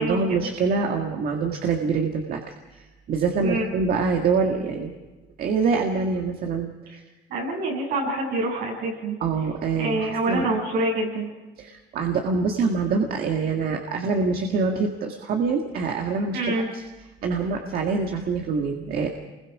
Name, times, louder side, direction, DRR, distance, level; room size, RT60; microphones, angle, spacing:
voice 1, 0.0-2.4 2.7-4.9 5.4-7.0 9.2-10.5 11.6-16.4 16.7-16.8 17.2-19.1, right 4 dB, 60° right, 2 dB, 2.0 m, -25 dB
voice 2, 7.3-9.2 9.8-11.3 16.3-16.7, right 2 dB, 80° right, -1 dB, 7.9 m, -26 dB
28.5 x 21.5 x 5.0 m, 1.2 s
cardioid pair, 110°, 17 cm